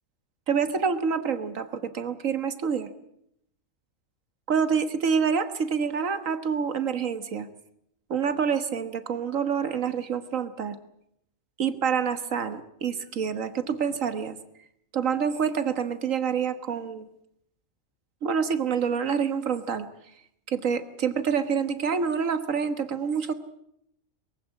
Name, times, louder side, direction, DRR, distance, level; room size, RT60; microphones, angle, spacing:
voice 1, 0.5-2.9 4.5-7.5 8.1-10.8 11.6-14.4 14.9-17.1 18.2-19.9 20.5-23.3, right 6 dB, 85° right, 11 dB, 1.8 m, -27 dB
23.0 x 15.5 x 9.7 m, 0.74 s
omnidirectional pair, 1.3 m